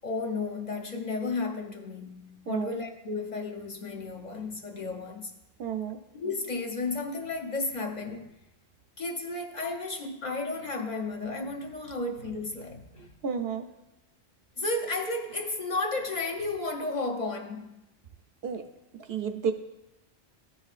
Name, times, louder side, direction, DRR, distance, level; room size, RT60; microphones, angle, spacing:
voice 1, 0.0-5.3 6.1-8.3 9.0-13.1 14.6-17.7, left 3 dB, 45° left, 0.7 m, -33 dB
voice 2, 2.5-2.8 5.6-6.0 13.0-13.7 18.4-18.6 19.1-19.5, right 6 dB, 65° right, 0.8 m, -31 dB
13.5 x 5.6 x 2.4 m
omnidirectional pair, 1.1 m